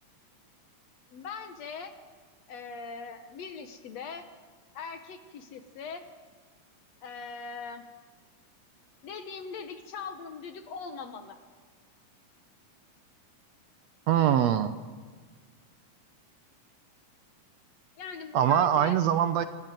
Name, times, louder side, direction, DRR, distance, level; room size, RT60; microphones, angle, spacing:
voice 1, 1.1-1.9 2.5-4.2 4.7-6.0 7.0-7.8 9.0-11.4 18.0-19.0 19.4-19.5, left 5 dB, 65° left, 8 dB, 2.0 m, -41 dB
voice 2, 14.1-14.7 18.3-19.4, right 10 dB, 75° right, 11 dB, 1.6 m, -23 dB
26.0 x 14.0 x 9.2 m, 1.5 s
omnidirectional pair, 3.8 m